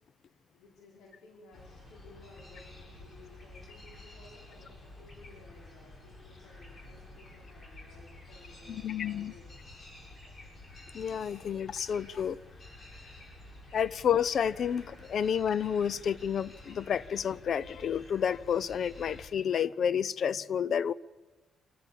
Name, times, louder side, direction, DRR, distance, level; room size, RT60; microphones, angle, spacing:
voice 1, 0.5-9.5, left 3 dB, 85° left, 4.9 m, -56 dB
sound 1, 1.5-19.3, left 2 dB, 35° left, 7.7 m, -51 dB
voice 2, 8.7-9.3 10.9-12.4 13.7-20.9, left 8 dB, 60° left, 0.7 m, -30 dB
28.0 x 14.5 x 7.1 m
cardioid pair, 90°, 0 cm